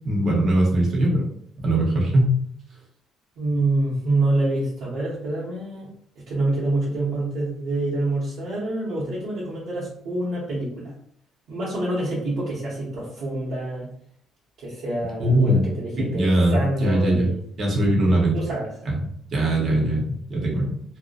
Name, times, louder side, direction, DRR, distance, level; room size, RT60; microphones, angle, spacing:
voice 1, 0.0-1.2 1.6-2.4 15.2-15.6 16.0-17.3 17.6-18.4 18.9-19.0 19.3-20.0 20.3-20.7, right 1 dB, 45° right, -2 dB, 0.8 m, -20 dB
voice 2, 3.4-5.9 6.2-10.9 11.5-13.9 14.6-17.4 18.3-18.7, right 2 dB, 75° right, -8 dB, 0.8 m, -26 dB
2.6 x 2.1 x 2.3 m, 0.67 s
cardioid pair, 145°, 0 cm